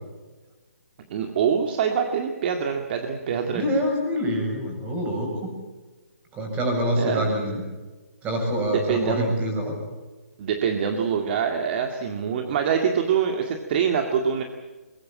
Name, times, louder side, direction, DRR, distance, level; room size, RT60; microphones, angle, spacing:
voice 1, 1.1-3.7 7.0-7.4 8.7-9.3 10.4-14.4, right 7 dB, 40° right, 4 dB, 2.1 m, -25 dB
voice 2, 3.5-5.3 6.3-7.6 8.2-9.7, equal, 20° right, 2 dB, 7.8 m, -25 dB
22.0 x 21.5 x 8.8 m, 1.3 s
hypercardioid pair, 145°, 8 cm